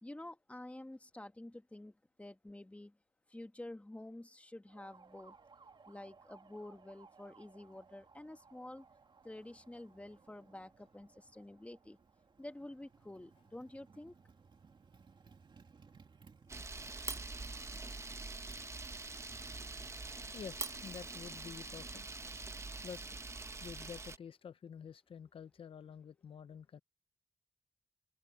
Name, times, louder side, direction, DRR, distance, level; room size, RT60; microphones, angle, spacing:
voice 1, 0.0-3.0 3.3-5.4 5.9-8.9 9.2-12.0 12.4-14.1, left 1 dB, 15° left, 1.7 m, -49 dB
Motorcycle, 4.7-23.7, right 5 dB, 55° right, 2.6 m, -62 dB
Camera, 16.5-24.2, right 3 dB, 30° right, 1.0 m, -44 dB
voice 2, 20.3-22.0 22.8-23.2 23.6-26.8, left 7 dB, 70° left, 0.6 m, -49 dB
open air
wide cardioid pair, 80°, 10 cm